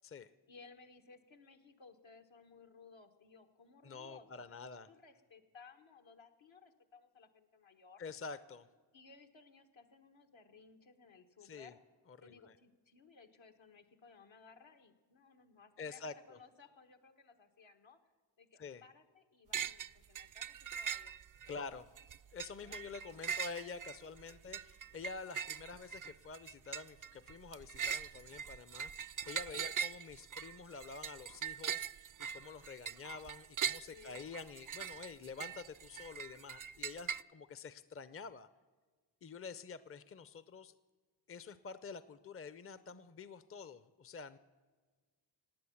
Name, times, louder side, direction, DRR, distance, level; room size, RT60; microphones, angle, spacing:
voice 1, 0.5-8.0 8.9-11.8 12.2-18.0 18.4-21.1 22.6-22.8 24.3-24.4 29.6-29.8 33.9-34.2, left 4 dB, 70° left, 5 dB, 1.4 m, -60 dB
voice 2, 3.8-4.9 8.0-8.7 11.4-11.7 12.1-12.4 15.8-16.4 18.6-18.8 21.5-21.9 22.3-31.9 32.3-38.5 39.2-40.7 41.3-44.4, left 5 dB, 30° left, 15 dB, 0.6 m, -48 dB
sound 1, 19.5-19.9 20.2-21.5 22.0-37.2, right 7 dB, 45° right, 0.4 m, -41 dB
16.5 x 9.4 x 7.2 m, 1.4 s
cardioid pair, 45°, 47 cm